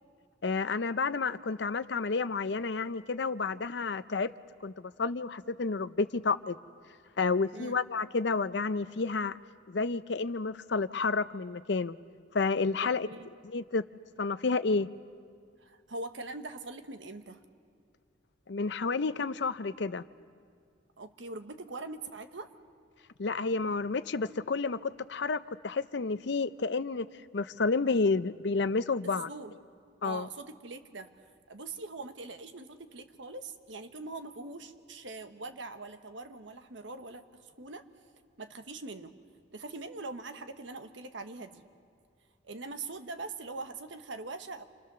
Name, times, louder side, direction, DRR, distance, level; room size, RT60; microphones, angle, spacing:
voice 1, 0.4-4.3 4.6-6.6 7.2-9.3 9.7-12.0 12.3-13.1 13.4-13.8 14.2-14.9 18.5-20.0 23.2-27.1 27.3-29.3 30.0-30.3, left 4 dB, 65° left, 14 dB, 0.6 m, -30 dB
voice 2, 12.8-13.3 15.6-17.4 21.0-22.5 29.0-29.5 30.0-31.1 31.5-37.8 38.4-39.2 39.5-41.7 42.4-44.6, right 3 dB, 75° right, 8 dB, 1.2 m, -42 dB
29.0 x 25.0 x 6.8 m, 2.1 s
head